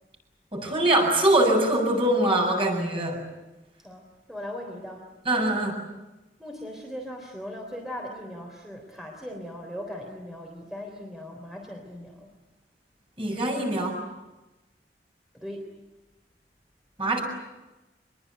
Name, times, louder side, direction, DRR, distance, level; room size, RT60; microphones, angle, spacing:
voice 1, 0.5-3.2 5.3-5.8 13.2-14.0 17.0-17.2, right 1 dB, 30° right, 2 dB, 7.4 m, -23 dB
voice 2, 4.3-5.1 6.4-12.3 15.3-15.7, equal, 5° right, 1 dB, 3.6 m, -39 dB
25.5 x 22.0 x 9.5 m, 1.1 s
head